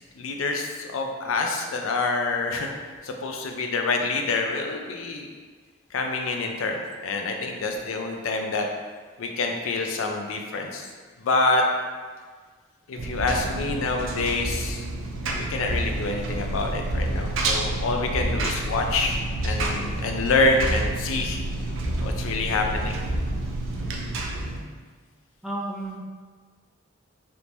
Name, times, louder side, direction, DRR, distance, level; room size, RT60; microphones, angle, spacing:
voice 1, 0.2-2.7 3.0-5.3 5.9-8.7 9.2-10.9 11.2-11.7 12.9-14.9 15.2-21.4 22.0-23.0, left 3 dB, 90° left, 3 dB, 0.4 m, -26 dB
Engine, 13.0-24.6, right 2 dB, 75° right, 0.5 m, -29 dB
voice 2, 25.4-26.0, right 1 dB, ahead, -3 dB, 0.3 m, -32 dB
3.4 x 2.6 x 2.9 m, 1.5 s
head